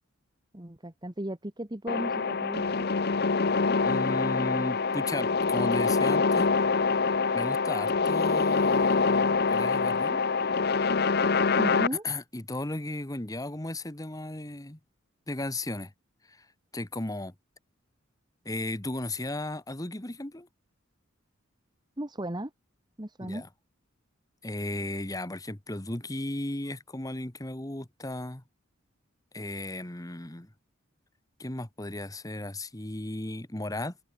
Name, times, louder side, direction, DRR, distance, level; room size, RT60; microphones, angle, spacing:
voice 1, 0.5-2.9 11.6-12.1 22.0-22.5 23.0-23.4, right 1 dB, 20° right, 1.4 m, -35 dB
sound 1, 1.9-11.9, left 4 dB, 50° left, 0.8 m, -25 dB
voice 2, 3.8-6.5 7.3-10.2 12.0-14.8 15.3-15.9 16.3-16.5 16.7-17.3 18.4-20.5 23.3-23.5 24.4-28.4 29.3-30.5 31.4-33.9, left 1 dB, 15° left, 1.4 m, -35 dB
head